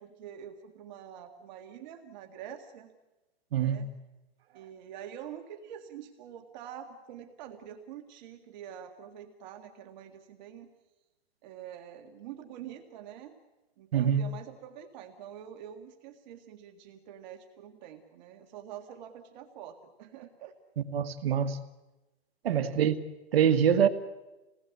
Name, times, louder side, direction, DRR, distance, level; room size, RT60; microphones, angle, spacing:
voice 1, 0.0-2.9 3.6-3.9 4.5-10.7 11.4-13.4 13.8-20.5 22.4-22.8, right 9 dB, 45° right, 5 dB, 2.0 m, -46 dB
voice 2, 3.5-3.9 13.9-14.2 20.9-21.6 22.4-23.0 23.3-23.9, right 8 dB, 70° right, 9 dB, 1.9 m, -24 dB
28.0 x 18.5 x 8.4 m, 1.1 s
hypercardioid pair, 145°, 31 cm